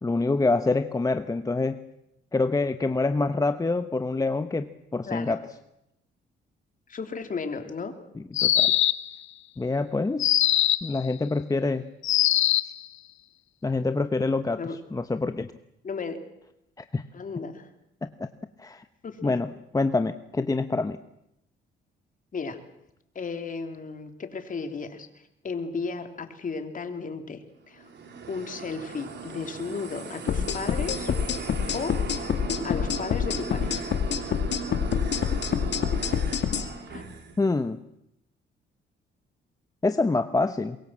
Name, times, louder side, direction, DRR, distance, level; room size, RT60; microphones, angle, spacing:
voice 1, 0.0-1.8 2.3-5.4 8.2-8.7 9.6-10.3 10.8-11.9 13.6-14.6 14.9-15.5 16.8-17.0 18.0-18.3 18.6-18.8 19.2-21.0 36.2-36.3 37.4-37.8 39.8-40.8, left 3 dB, 15° left, 10 dB, 1.0 m, -26 dB
voice 2, 5.0-5.4 6.9-7.9 14.6-14.8 15.8-16.2 17.1-17.7 19.0-19.4 22.3-22.6 23.1-27.8 28.3-31.1 31.7-32.0 32.6-33.8 36.5-36.6 36.9-37.0, left 5 dB, 40° left, 7 dB, 3.2 m, -34 dB
sound 1, 8.3-9.1 10.2-10.9 12.0-12.8, left 13 dB, 75° left, 1.0 m, -21 dB
sound 2, 27.7-37.5, right 4 dB, 60° right, 4.1 m, -38 dB
sound 3, 30.3-36.7, left 7 dB, 60° left, 2.2 m, -26 dB
23.5 x 22.5 x 7.5 m, 0.84 s
cardioid pair, 90°, 20 cm